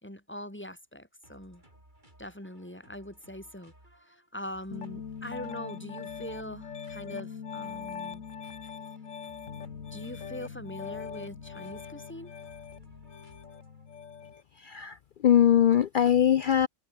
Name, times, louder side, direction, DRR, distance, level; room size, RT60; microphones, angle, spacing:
voice 1, 0.0-1.6 2.2-3.7 4.0-8.2 9.9-12.4, left 1 dB, 10° left, 4.4 m, -42 dB
sound 1, 1.2-14.0, right 1 dB, 35° right, 8.3 m, -59 dB
Piano, 4.7-14.4, left 6 dB, 65° left, 1.8 m, -41 dB
voice 2, 14.6-15.0 15.2-16.7, left 10 dB, 85° left, 0.4 m, -21 dB
omnidirectional pair, 1.4 m